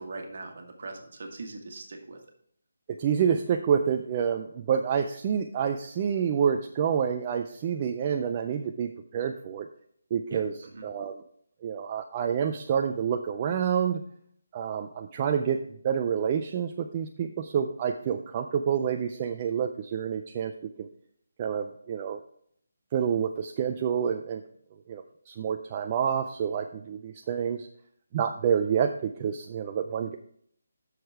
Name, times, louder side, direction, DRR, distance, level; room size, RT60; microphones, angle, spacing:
voice 1, 0.0-2.2 10.3-10.9, right 3 dB, 40° right, 3 dB, 1.6 m, -41 dB
voice 2, 3.0-9.7 10.1-10.5 10.8-11.2 11.6-14.0 14.5-15.6 15.8-20.5 20.8-20.9 21.4-22.2 22.9-24.4 24.9-27.7 28.1-30.1, right 7 dB, 20° right, 5 dB, 0.3 m, -28 dB
7.7 x 6.4 x 4.6 m, 0.64 s
hypercardioid pair, 175°, 0 cm